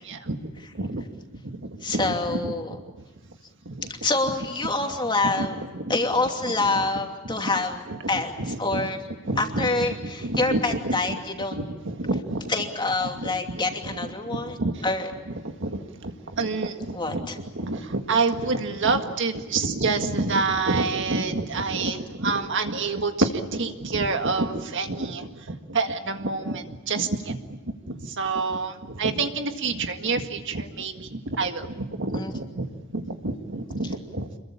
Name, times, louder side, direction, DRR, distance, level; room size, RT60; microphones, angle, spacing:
voice 1, 0.0-2.5 3.7-3.9 5.4-5.9 6.6-6.8 7.4-7.5 7.9-8.9 9.3-11.2 11.5-12.5 13.2-14.0 14.3-14.8 15.6-27.6 27.9-34.3, right 3 dB, 60° right, 6 dB, 1.8 m, -28 dB
voice 2, 1.8-2.8 3.8-9.0 9.4-11.6 12.5-14.6 14.8-15.1 16.9-17.4 32.1-32.3, left 3 dB, 20° left, 3 dB, 2.7 m, -27 dB
27.0 x 22.5 x 8.6 m, 1.2 s
head